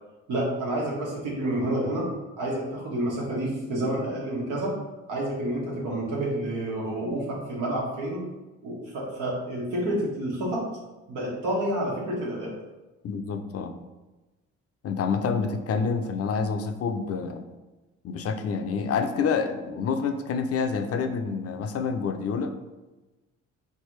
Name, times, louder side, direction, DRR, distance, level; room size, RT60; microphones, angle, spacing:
voice 1, 0.3-2.1 2.4-4.7 5.1-8.3 8.6-10.6 11.1-12.5, right 1 dB, 85° right, -4 dB, 1.5 m, -29 dB
voice 2, 13.0-13.7 14.8-17.5 18.0-22.6, left 5 dB, 50° left, 6 dB, 0.5 m, -28 dB
4.0 x 3.3 x 3.1 m, 1.1 s
cardioid pair, 90°, 30 cm